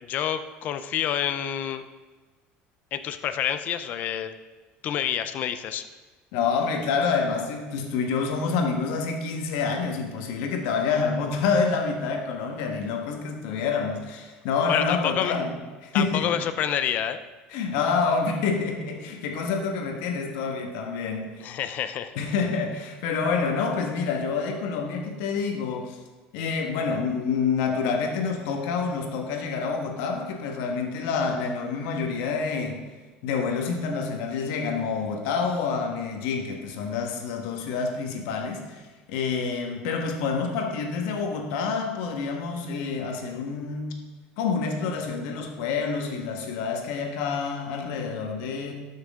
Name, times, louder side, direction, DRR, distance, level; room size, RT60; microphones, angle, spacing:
voice 1, 0.1-1.8 2.9-4.3 4.8-5.9 14.7-15.3 15.9-17.2 21.4-22.1, left 10 dB, 50° left, 11 dB, 0.6 m, -28 dB
voice 2, 6.3-15.5 15.8-16.3 17.5-21.5 22.1-26.0 26.3-32.8 33.2-38.8 39.1-43.9 44.4-48.7, left 5 dB, 80° left, 3 dB, 1.5 m, -27 dB
12.5 x 6.4 x 3.7 m, 1.3 s
cardioid pair, 135°, 4 cm